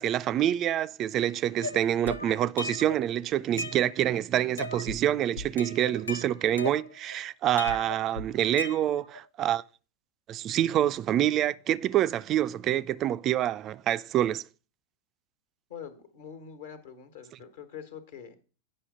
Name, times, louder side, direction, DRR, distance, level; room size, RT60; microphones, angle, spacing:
voice 1, 0.0-9.6 10.3-14.4, right 11 dB, 30° right, 0.3 m, -27 dB
sound 1, 1.6-3.0 3.4-4.2 4.6-5.0 5.4-7.2 7.6-9.2, left 2 dB, 75° left, 0.5 m, -37 dB
voice 2, 15.7-18.4, left 8 dB, 55° left, 1.3 m, -44 dB
9.7 x 5.5 x 4.8 m
figure-of-eight pair, 90°, 0 cm